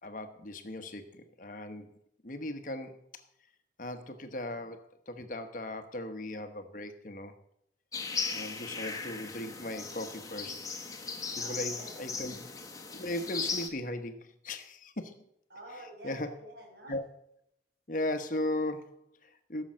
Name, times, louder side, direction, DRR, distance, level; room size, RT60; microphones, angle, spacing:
voice 1, 0.0-1.9 2.2-3.0 3.8-7.3 8.3-10.6 11.4-12.4 12.9-15.2 16.0-16.3 16.9-17.0 17.9-19.6, left 1 dB, 45° left, 8 dB, 1.1 m, -37 dB
sound 1, 7.9-13.7, left 4 dB, 20° left, 1.3 m, -37 dB
voice 2, 11.3-12.3 15.5-17.0, right 1 dB, 70° right, 0 dB, 5.3 m, -49 dB
16.0 x 7.0 x 6.3 m, 0.75 s
head